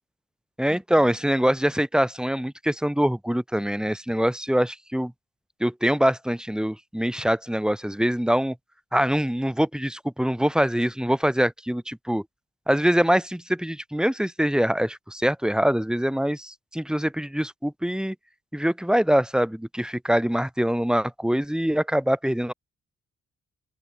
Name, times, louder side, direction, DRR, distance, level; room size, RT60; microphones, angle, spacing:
voice 1, 0.6-5.1 5.6-8.5 8.9-12.2 12.7-18.1 18.5-22.5, equal, ahead, 1.5 m, -24 dB
open air
supercardioid pair, 50°, 32 cm